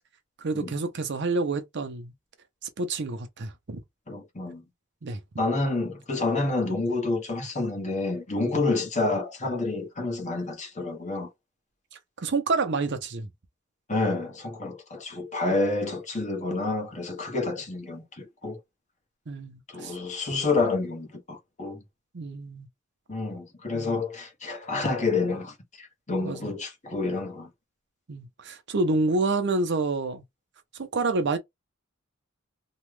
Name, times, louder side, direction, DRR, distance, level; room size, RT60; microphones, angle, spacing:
voice 1, 0.4-2.1 2.8-3.8 5.0-5.2 12.2-13.3 19.3-19.9 22.1-22.7 23.7-24.0 26.2-26.5 28.1-30.2 30.8-31.4, right 3 dB, 60° right, 0.7 m, -28 dB
voice 2, 4.1-4.6 5.4-11.3 13.9-18.6 19.7-21.8 23.1-27.5, left 3 dB, 35° left, 1.2 m, -29 dB
3.0 x 2.4 x 3.3 m
head